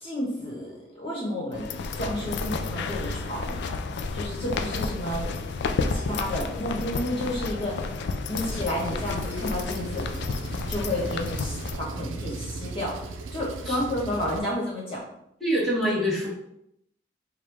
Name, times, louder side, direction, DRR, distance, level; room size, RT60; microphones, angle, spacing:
voice 1, 0.0-3.5 4.1-5.3 5.9-7.9 8.3-10.1 10.7-13.0 13.3-15.0, left 1 dB, 30° left, -5 dB, 1.2 m, -31 dB
sound 1, 1.5-11.8, left 4 dB, 65° left, 0.4 m, -31 dB
Engine, 8.4-14.4, right 3 dB, 85° right, 0.5 m, -37 dB
voice 2, 15.4-16.3, equal, ahead, -8 dB, 1.2 m, -25 dB
4.8 x 2.3 x 3.4 m, 0.76 s
head